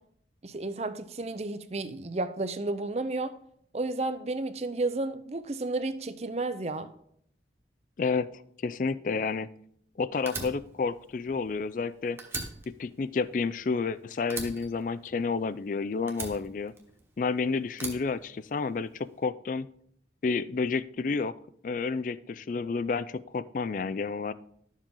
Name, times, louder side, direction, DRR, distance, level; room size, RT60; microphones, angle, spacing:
voice 1, 0.4-3.3 3.7-6.9, right 2 dB, 35° right, 12 dB, 0.6 m, -32 dB
voice 2, 8.0-8.3 8.6-9.5 10.0-12.2 12.7-16.7 17.2-19.7 20.2-21.4 21.6-24.3, left 4 dB, 45° left, 16 dB, 0.3 m, -30 dB
Fire, 10.3-11.9 12.2-13.9 14.3-15.6 16.1-17.2 17.7-18.9, right 3 dB, 15° right, 1.2 m, -40 dB
11.5 x 7.3 x 3.8 m, 0.69 s
head